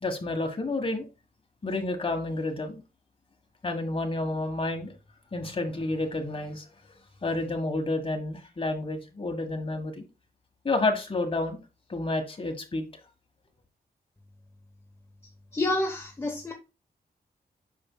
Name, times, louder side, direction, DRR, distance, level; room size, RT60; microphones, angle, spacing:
voice 1, 0.0-1.1 1.6-2.8 3.6-4.9 5.3-6.6 7.2-10.0 10.6-11.6 11.9-12.8, left 2 dB, 35° left, 1.4 m, -30 dB
voice 2, 15.5-16.5, left 2 dB, 15° left, 0.9 m, -28 dB
8.7 x 5.9 x 2.2 m
wide cardioid pair, 160°, 17 cm